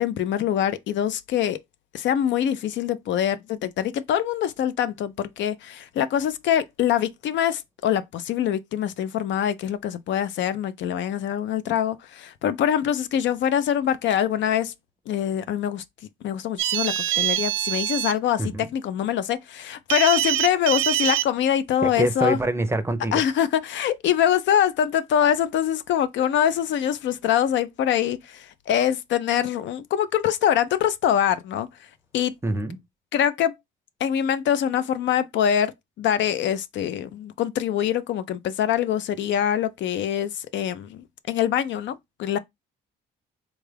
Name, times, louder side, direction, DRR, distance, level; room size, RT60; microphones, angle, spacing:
voice 1, 0.0-1.6 1.9-14.7 15.1-15.8 16.2-22.4 23.1-31.7 32.1-32.3 33.1-33.5 34.0-42.4, left 10 dB, 70° left, 0.4 m, -24 dB
sound 1, 16.6-18.1 19.9-21.2, right 14 dB, 80° right, 0.4 m, -24 dB
voice 2, 21.8-23.1 32.4-32.8, right 2 dB, 15° right, 0.5 m, -25 dB
3.5 x 2.3 x 3.3 m
cardioid pair, 90°, 20 cm